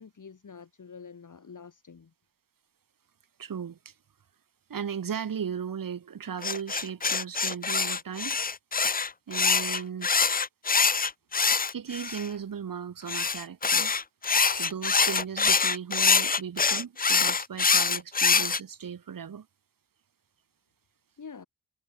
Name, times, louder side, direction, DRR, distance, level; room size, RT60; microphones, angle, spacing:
voice 1, 0.0-2.1 21.2-21.5, left 5 dB, 65° left, 2.0 m, -46 dB
voice 2, 3.4-3.9 4.7-8.4 9.3-10.1 11.7-13.9 14.5-19.5, right 7 dB, 80° right, 1.2 m, -36 dB
sound 1, 6.4-12.3 13.1-18.6, left 5 dB, 25° left, 0.4 m, -24 dB
wide cardioid pair, 115°, 34 cm